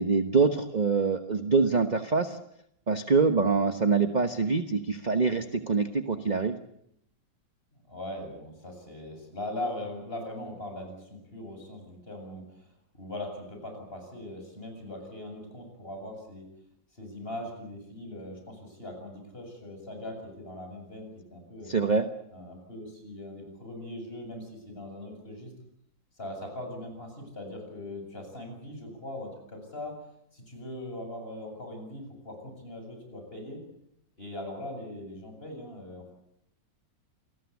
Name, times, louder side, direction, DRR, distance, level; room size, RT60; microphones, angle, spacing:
voice 1, 0.0-2.4 2.9-6.6 21.7-22.1, right 4 dB, 30° right, 8 dB, 1.1 m, -25 dB
voice 2, 7.9-16.5 17.0-21.7 22.3-25.5 26.2-30.0 30.3-33.6 34.2-36.1, left 1 dB, 30° left, 3 dB, 8.0 m, -40 dB
28.0 x 20.0 x 8.4 m, 0.73 s
omnidirectional pair, 2.0 m